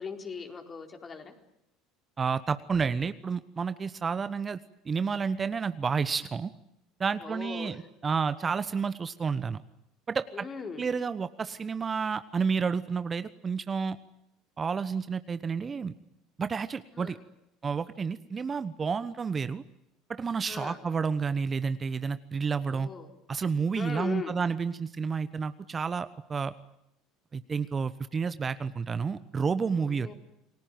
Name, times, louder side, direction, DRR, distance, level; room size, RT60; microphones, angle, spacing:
voice 1, 0.0-1.3 7.2-7.8 10.3-10.9 16.9-17.2 20.5-20.8 22.6-23.1 23.7-24.4 29.8-30.1, left 5 dB, 30° left, 4 dB, 4.5 m, -39 dB
voice 2, 2.2-4.6 4.8-6.5 7.0-9.6 10.1-10.5 10.8-14.0 14.6-15.9 16.4-17.2 17.6-19.6 20.1-22.9 23.3-26.5 27.3-30.1, right 5 dB, 30° right, 13 dB, 1.0 m, -30 dB
28.5 x 19.5 x 9.3 m, 0.81 s
hypercardioid pair, 75°, 0 cm